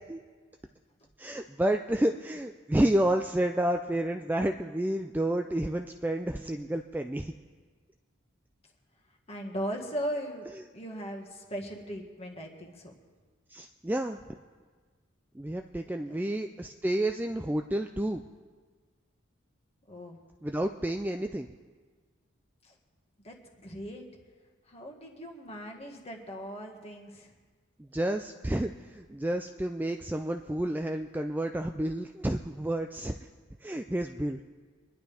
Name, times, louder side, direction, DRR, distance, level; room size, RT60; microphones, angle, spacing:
voice 1, 1.2-7.3 13.5-14.4 15.3-18.2 20.4-21.5 27.9-33.2 33.6-34.4, right 1 dB, 10° right, 5 dB, 0.3 m, -30 dB
voice 2, 9.3-12.9 16.1-16.2 19.9-20.2 22.6-22.8 23.2-24.0 24.7-27.3, equal, 30° left, 1 dB, 1.7 m, -38 dB
25.0 x 11.0 x 3.4 m, 1.5 s
head